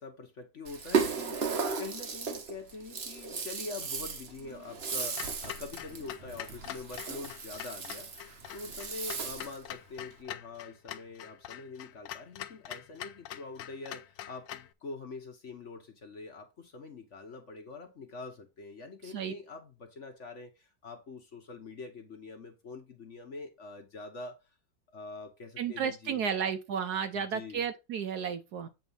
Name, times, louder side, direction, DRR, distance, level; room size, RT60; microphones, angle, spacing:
voice 1, 0.0-8.1 8.5-24.4 24.9-26.3 27.1-27.6, left 3 dB, 45° left, 1.2 m, -44 dB
Rattle (instrument), 0.6-9.6, right 5 dB, 45° right, 1.0 m, -35 dB
Clock, 5.1-14.7, left 12 dB, 80° left, 1.3 m, -44 dB
voice 2, 25.6-28.7, right 7 dB, 65° right, 1.2 m, -33 dB
8.1 x 3.2 x 5.5 m
omnidirectional pair, 2.0 m